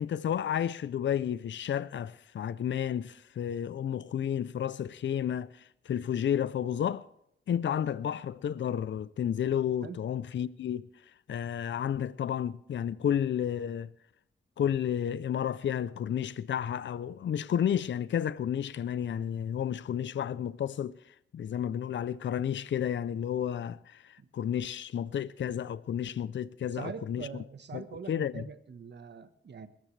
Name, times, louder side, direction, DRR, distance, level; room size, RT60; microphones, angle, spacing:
voice 1, 0.0-7.1 7.5-10.8 11.3-13.9 14.6-27.4 27.7-27.8 28.1-28.5, left 9 dB, 65° left, 0.5 m, -31 dB
voice 2, 26.7-29.7, right 6 dB, 60° right, 1.2 m, -43 dB
21.5 x 13.5 x 3.3 m
wide cardioid pair, 100°, 20 cm